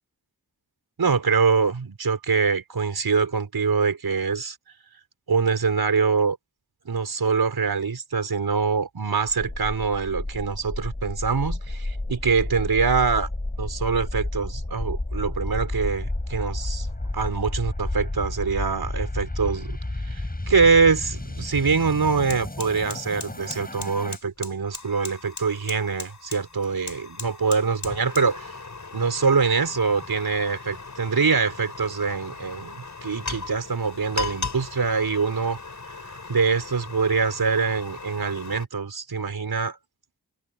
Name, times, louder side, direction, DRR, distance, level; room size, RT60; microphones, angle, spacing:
voice 1, 1.0-4.6 5.3-6.4 6.9-13.3 13.6-16.9 17.1-19.8 20.0-28.5 28.9-35.6 36.1-39.8, right 5 dB, 70° right, 5.3 m, -24 dB
sound 1, 9.3-24.2, left 2 dB, 25° left, 7.2 m, -31 dB
Fire, 21.2-21.3 21.6-38.6, left 3 dB, 50° left, 7.0 m, -38 dB
cardioid pair, 45°, 38 cm